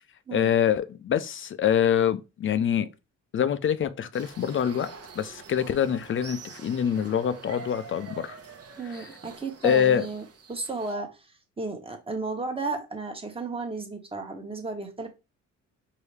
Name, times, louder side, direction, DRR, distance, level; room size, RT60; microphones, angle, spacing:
voice 1, 0.3-2.9 3.3-8.4 9.0-9.1 9.6-10.1, left 9 dB, 40° left, 0.5 m, -25 dB
sound 1, 4.1-11.0, right 5 dB, 55° right, 1.0 m, -46 dB
voice 2, 8.8-11.3 11.6-15.1, right 3 dB, 20° right, 1.1 m, -34 dB
4.7 x 2.7 x 3.3 m
cardioid pair, 90°, 30 cm